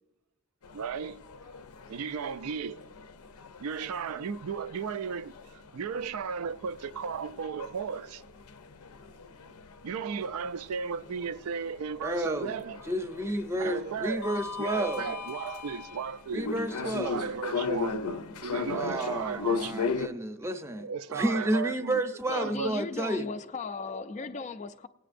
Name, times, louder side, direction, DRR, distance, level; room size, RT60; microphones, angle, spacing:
sound 1, 0.6-20.1, left 5 dB, 90° left, 0.6 m, -38 dB
voice 1, 0.7-1.2 1.9-2.8 3.6-8.2 9.8-12.8 13.5-16.5 16.8-18.1 18.4-20.0 20.8-22.0 22.3-22.7, right 6 dB, 75° right, 0.4 m, -35 dB
voice 2, 12.0-12.5 12.9-15.0 16.3-17.1 18.7-23.3, right 1 dB, 10° right, 0.6 m, -31 dB
voice 3, 22.3-24.9, left 4 dB, 30° left, 0.4 m, -37 dB
20.5 x 8.8 x 2.5 m
head